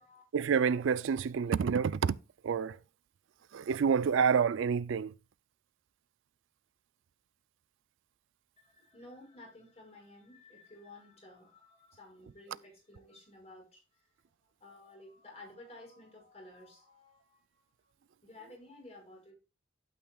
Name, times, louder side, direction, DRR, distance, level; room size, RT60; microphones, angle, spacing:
voice 1, 0.3-2.2 2.4-2.8 3.5-5.1, right 6 dB, 80° right, 0.4 m, -28 dB
voice 2, 8.6-14.1 14.4-19.3, left 2 dB, 35° left, 5.7 m, -54 dB
12.0 x 9.1 x 2.3 m
head